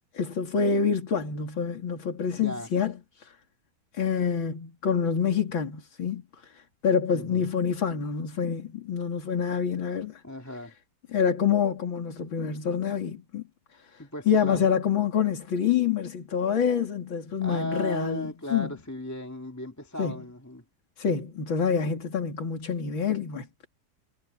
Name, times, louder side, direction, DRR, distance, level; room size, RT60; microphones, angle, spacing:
voice 1, 0.1-3.4 3.9-10.2 11.1-13.4 13.8-18.7 20.0-20.2 21.0-23.7, left 7 dB, 85° left, 3.5 m, -27 dB
voice 2, 2.4-2.7 7.1-7.5 10.2-10.7 14.0-14.7 17.4-20.6, left 1 dB, 10° left, 1.8 m, -36 dB
omnidirectional pair, 2.1 m